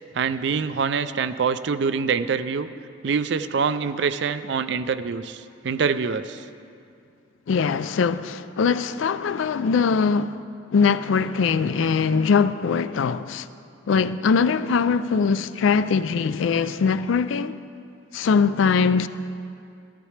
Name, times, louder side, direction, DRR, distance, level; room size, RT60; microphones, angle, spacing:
voice 1, 0.1-2.7 3.0-6.4, right 5 dB, 60° right, 0.4 m, -25 dB
voice 2, 7.5-10.4 10.7-13.5 13.9-17.6 18.1-19.1, left 5 dB, 75° left, 0.4 m, -21 dB
13.5 x 13.5 x 3.3 m
head